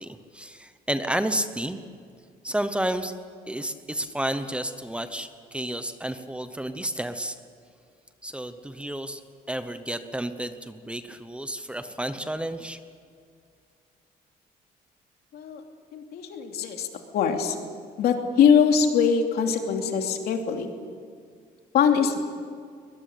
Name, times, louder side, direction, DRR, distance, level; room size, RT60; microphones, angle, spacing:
voice 1, 0.0-1.8 2.4-3.1 3.5-7.4 8.2-9.2 9.5-12.8, right 1 dB, 5° right, 10 dB, 0.9 m, -31 dB
voice 2, 15.9-16.9 17.1-17.6 18.0-20.7 21.7-22.2, left 7 dB, 75° left, 4 dB, 2.9 m, -22 dB
23.0 x 21.0 x 8.5 m, 2.2 s
cardioid pair, 160°, 16 cm